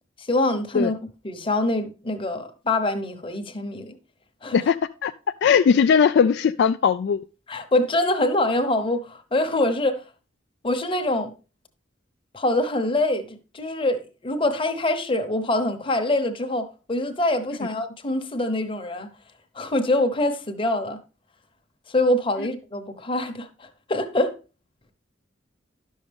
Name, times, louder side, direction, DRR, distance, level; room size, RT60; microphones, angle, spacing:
voice 1, 0.2-1.0 1.2-3.9 4.4-4.6 7.5-10.0 10.6-11.3 12.3-19.1 19.5-21.0 21.9-24.4, left 1 dB, 30° left, 0.9 m, -24 dB
voice 2, 5.4-7.2, left 7 dB, 60° left, 0.3 m, -18 dB
11.5 x 6.4 x 3.4 m
head